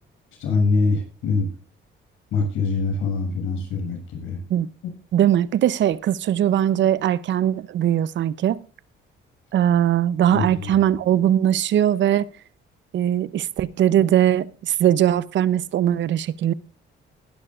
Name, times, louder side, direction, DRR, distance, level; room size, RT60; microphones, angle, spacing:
voice 1, 0.4-1.5 2.3-4.4 4.8-4.9 10.3-10.8, left 4 dB, 85° left, 7.1 m, -24 dB
voice 2, 5.1-8.6 9.5-12.3 12.9-16.5, right 10 dB, 65° right, 0.7 m, -20 dB
20.0 x 12.0 x 2.4 m
cardioid pair, 90°, 20 cm